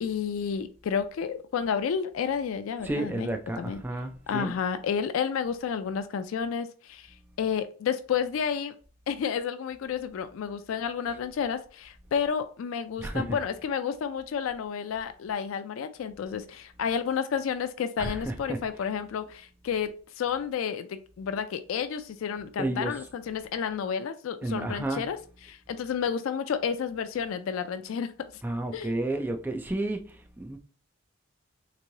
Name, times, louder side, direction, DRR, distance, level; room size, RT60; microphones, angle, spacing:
voice 1, 0.0-3.3 3.6-3.8 4.3-8.7 9.1-25.2 25.4-28.1 28.7-28.9, left 7 dB, 75° left, 0.3 m, -31 dB
voice 2, 2.8-4.5 13.0-13.4 18.0-18.6 22.6-23.0 24.4-25.1 28.4-30.6, right 2 dB, 10° right, 0.3 m, -31 dB
3.6 x 3.0 x 2.6 m
head